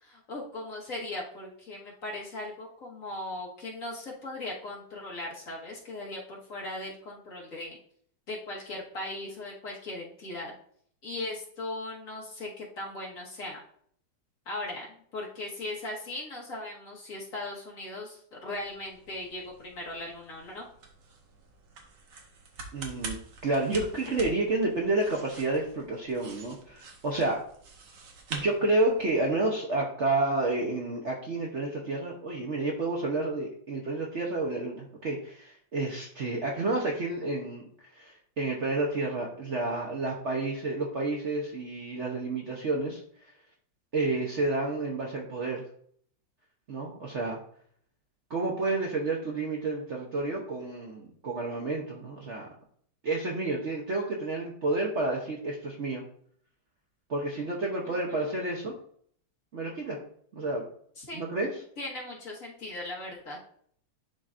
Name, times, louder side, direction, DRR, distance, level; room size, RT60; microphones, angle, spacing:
voice 1, 0.0-7.8 8.3-10.5 11.0-13.6 14.5-14.9 15.1-20.7 57.9-58.3 61.0-61.2 61.8-63.4, left 2 dB, 50° left, -3 dB, 1.7 m, -38 dB
sound 1, 18.4-29.2, right 3 dB, 70° right, 1.6 m, -46 dB
voice 2, 22.7-23.2 23.4-27.4 28.3-37.7 37.9-43.3 43.9-45.6 46.7-47.4 48.3-52.5 53.0-56.0 57.1-58.8 59.5-60.0 60.3-60.6 61.1-61.6, right 2 dB, 55° right, -1 dB, 0.9 m, -30 dB
10.5 x 3.9 x 2.5 m, 0.62 s
omnidirectional pair, 2.0 m